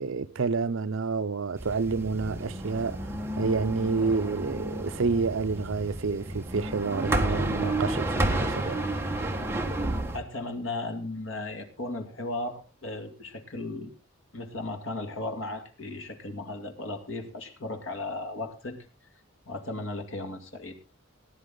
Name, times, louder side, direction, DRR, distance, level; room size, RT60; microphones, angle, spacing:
voice 1, 0.0-3.1 3.4-8.8, right 4 dB, 70° right, 0.6 m, -29 dB
sound 1, 1.5-10.2, right 1 dB, 10° right, 1.5 m, -31 dB
voice 2, 10.1-13.9 14.3-18.8 19.5-20.7, left 2 dB, 70° left, 2.3 m, -36 dB
18.0 x 10.0 x 3.8 m
head